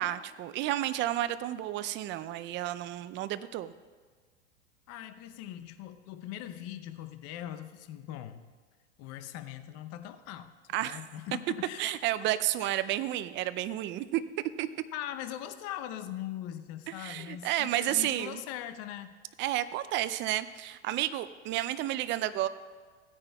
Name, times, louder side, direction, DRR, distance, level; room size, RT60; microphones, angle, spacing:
voice 1, 0.0-3.7 10.7-11.0 11.8-14.7 17.0-18.4 19.4-22.5, right 13 dB, 35° right, 14 dB, 0.5 m, -31 dB
voice 2, 4.9-8.5 9.0-10.5 10.8-11.9 12.6-12.7 14.9-19.1, left 12 dB, 45° left, 10 dB, 0.8 m, -41 dB
16.5 x 9.8 x 2.3 m, 1.5 s
hypercardioid pair, 105°, 35 cm